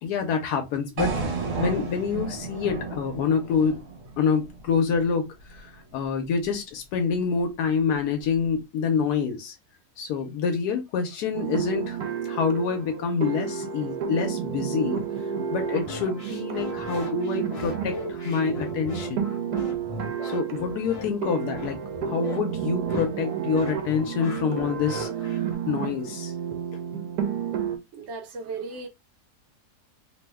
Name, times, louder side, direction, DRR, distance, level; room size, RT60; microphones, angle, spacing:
voice 1, 0.0-1.2 1.6-3.8 4.2-9.6 10.0-12.0 12.2-15.0 15.5-19.3 20.2-25.1 25.7-26.3, left 6 dB, 85° left, 1.1 m, -27 dB
sound 1, 1.0-5.1, right 4 dB, 45° right, 1.4 m, -32 dB
sound 2, 11.3-27.8, right 8 dB, 80° right, 1.1 m, -31 dB
sound 3, 15.8-25.5, left 2 dB, 35° left, 0.6 m, -38 dB
voice 2, 27.9-28.9, right 4 dB, 60° right, 0.8 m, -36 dB
2.9 x 2.0 x 3.4 m
omnidirectional pair, 1.6 m